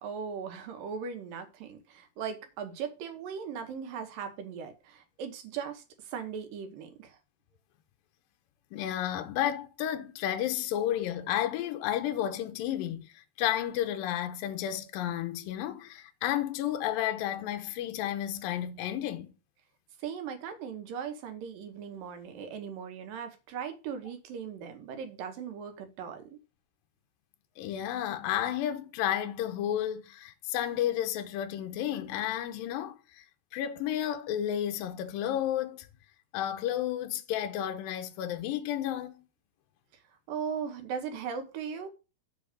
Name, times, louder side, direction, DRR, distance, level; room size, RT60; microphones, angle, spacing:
voice 1, 0.0-7.2 20.0-26.4 40.3-41.9, right 7 dB, 70° right, 2.8 m, -38 dB
voice 2, 8.7-19.3 27.6-33.3 33.5-35.9 36.3-39.3, left 11 dB, 75° left, 2.5 m, -32 dB
8.0 x 3.9 x 6.6 m
omnidirectional pair, 4.3 m